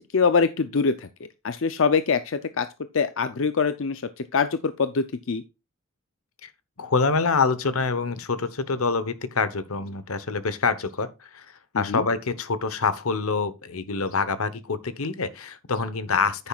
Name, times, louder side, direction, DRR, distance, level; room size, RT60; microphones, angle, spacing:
voice 1, 0.1-1.1 1.4-2.7 2.9-4.0 4.3-5.4 11.7-12.1, left 5 dB, 60° left, 0.6 m, -23 dB
voice 2, 6.8-16.5, left 4 dB, 85° left, 1.0 m, -26 dB
10.0 x 8.9 x 2.4 m
head